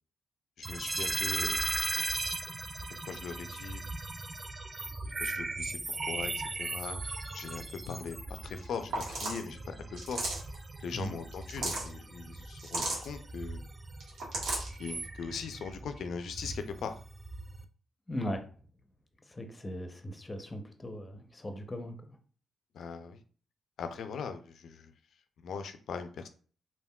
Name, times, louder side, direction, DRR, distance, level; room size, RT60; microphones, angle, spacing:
sound 1, 0.6-17.7, right 2 dB, 25° right, 0.3 m, -38 dB
voice 1, 0.7-1.8 3.0-3.8 5.2-7.0 7.3-9.6 9.9-10.2 10.8-13.6 14.8-17.0 22.7-23.2 23.8-24.9 25.4-26.3, left 5 dB, 70° left, 8 dB, 0.4 m, -40 dB
sound 2, 8.6-8.7 8.9-9.4 10.0-10.5 11.3-11.9 12.6-13.1 14.0-14.7, right 2 dB, 75° right, 1.0 m, -34 dB
voice 2, 18.1-18.4 19.3-22.2, equal, 25° left, 6 dB, 0.6 m, -38 dB
3.5 x 2.2 x 2.2 m, 0.42 s
supercardioid pair, 55°, 0 cm